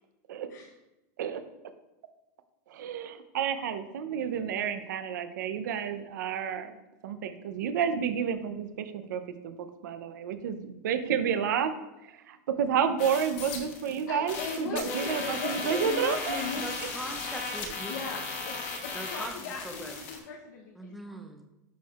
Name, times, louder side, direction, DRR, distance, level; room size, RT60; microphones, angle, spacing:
voice 1, 2.7-6.8 7.0-9.5 9.8-11.7 12.0-16.4, right 7 dB, 90° right, 10 dB, 0.6 m, -30 dB
sound 1, 13.0-14.0 14.3-20.2, left 4 dB, 40° left, 1.1 m, -36 dB
voice 2, 14.1-16.7 17.8-20.9, left 4 dB, 80° left, -1 dB, 0.9 m, -38 dB
voice 3, 16.5-18.3 18.9-19.3 19.6-20.0 20.8-21.5, right 1 dB, ahead, 3 dB, 0.4 m, -41 dB
10.0 x 4.4 x 2.4 m, 0.99 s
supercardioid pair, 170°, 10 cm